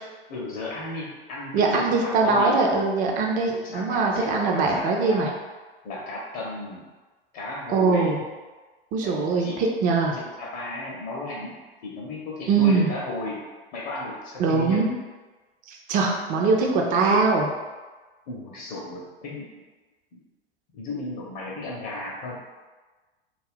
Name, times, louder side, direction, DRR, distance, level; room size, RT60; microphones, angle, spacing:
voice 1, 0.3-2.6 3.5-5.3 5.8-6.8 7.3-8.2 9.0-9.7 10.1-11.6 11.8-13.4 13.7-14.9 18.3-19.5 20.1-20.2 20.7-22.4, left 2 dB, 45° left, -4 dB, 0.6 m, -34 dB
voice 2, 1.5-5.3 7.7-8.2 8.9-10.1 12.5-12.9 14.4-14.9 15.7-17.5, right 4 dB, 25° right, 1 dB, 0.4 m, -22 dB
2.4 x 2.2 x 3.4 m, 1.3 s
figure-of-eight pair, 95°, 30 cm